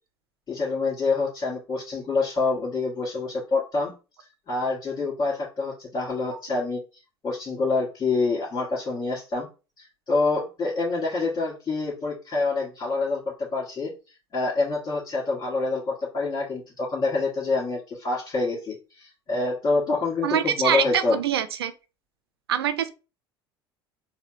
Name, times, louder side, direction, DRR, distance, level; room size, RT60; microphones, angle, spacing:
voice 1, 0.5-3.9 4.5-6.8 7.2-9.5 9.8-13.2 13.5-13.9 14.3-21.2, left 3 dB, 30° left, 1.9 m, -26 dB
voice 2, 20.2-21.7 22.5-22.9, right 9 dB, 90° right, 0.4 m, -24 dB
4.2 x 2.2 x 3.0 m
hypercardioid pair, 70°, 13 cm